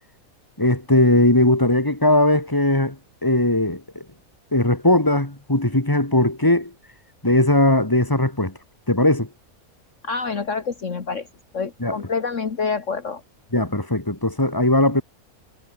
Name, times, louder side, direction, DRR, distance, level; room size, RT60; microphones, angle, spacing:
voice 1, 0.6-4.0 4.5-6.7 7.2-8.5 8.9-9.3 11.8-12.0 13.5-15.0, left 1 dB, 15° left, 3.2 m, -19 dB
voice 2, 10.0-11.3 11.5-13.2, left 5 dB, 55° left, 2.1 m, -27 dB
omnidirectional pair, 1.5 m